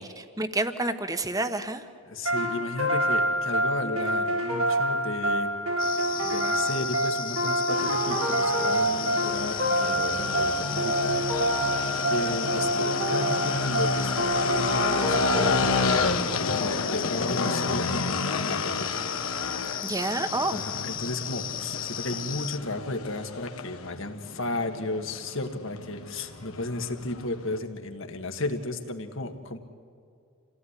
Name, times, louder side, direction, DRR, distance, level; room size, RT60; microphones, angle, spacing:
voice 1, 0.0-1.8 19.8-20.6, right 2 dB, 15° right, 9 dB, 1.2 m, -29 dB
voice 2, 2.1-5.5 6.2-11.1 11.4-11.8 12.1-18.2 18.4-19.1 19.7-20.1 20.5-29.6, left 2 dB, 65° left, 5 dB, 1.9 m, -34 dB
sound 1, 2.3-16.1, right 1 dB, 85° right, 2.4 m, -27 dB
sound 2, 5.8-22.6, left 10 dB, 40° left, 0.7 m, -36 dB
sound 3, 7.7-27.6, left 4 dB, 85° left, 1.5 m, -31 dB
28.0 x 17.0 x 10.0 m, 2.4 s
head